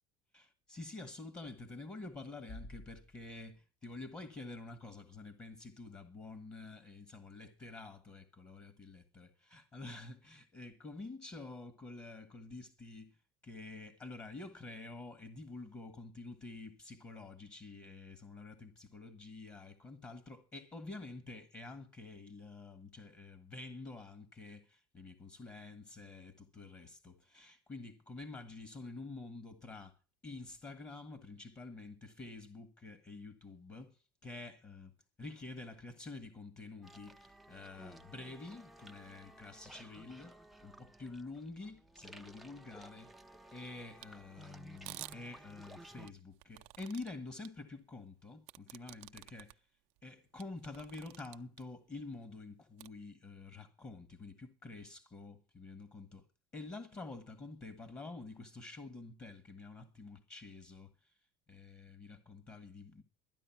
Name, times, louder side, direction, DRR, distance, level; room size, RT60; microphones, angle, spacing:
voice 1, 0.3-13.2 13.4-30.0 30.2-43.1 43.5-49.7 50.0-56.2 56.5-61.1 61.5-63.0, left 3 dB, 25° left, 1.6 m, -48 dB
sound 1, 36.8-46.1, right 1 dB, ahead, 0.6 m, -56 dB
sound 2, 44.0-44.1 44.8-45.2 46.1-47.1 47.4-47.5 48.5-49.5 50.0-50.1 50.4-51.6 52.8-52.9, right 21 dB, 65° right, 0.6 m, -50 dB
13.5 x 9.9 x 5.9 m
cardioid pair, 135°, 13 cm